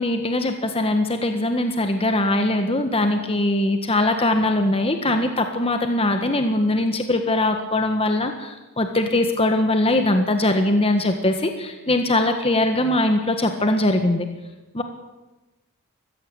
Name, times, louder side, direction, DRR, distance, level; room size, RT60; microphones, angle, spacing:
voice 1, 0.0-14.3 14.7-14.8, left 1 dB, 25° left, 6 dB, 1.6 m, -21 dB
22.0 x 15.5 x 8.9 m, 1.1 s
head